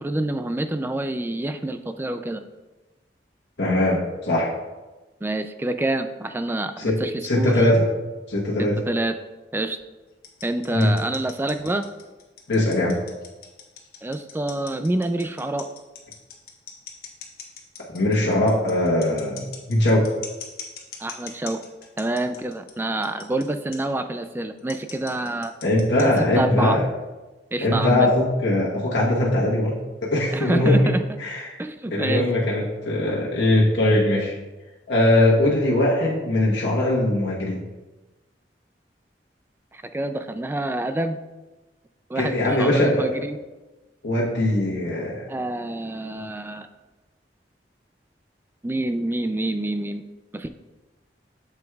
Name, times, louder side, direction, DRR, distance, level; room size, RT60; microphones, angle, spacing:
voice 1, 0.0-2.4 5.2-7.7 8.9-9.1 9.5-9.8 10.4-11.8 14.0-15.7 21.0-21.6 22.0-25.5 26.0-26.8 27.5-28.1 30.3-31.0 31.6-32.3 39.7-41.2 42.1-43.4 45.3-46.7 48.6-50.0 50.3-50.5, right 2 dB, 10° right, 8 dB, 0.3 m, -27 dB
voice 2, 3.6-4.5 6.8-7.8 8.3-8.8 10.7-10.9 12.5-13.0 17.9-20.1 25.6-26.8 27.6-29.7 30.0-30.9 31.2-31.6 31.9-34.3 34.9-37.6 42.1-43.1 44.0-45.3, left 1 dB, 85° left, -4 dB, 1.2 m, -21 dB
sound 1, 10.2-22.7 23.0-23.4 23.7-23.8 24.6-26.4, left 7 dB, 55° left, 1.1 m, -40 dB
7.7 x 7.1 x 2.4 m, 1.1 s
head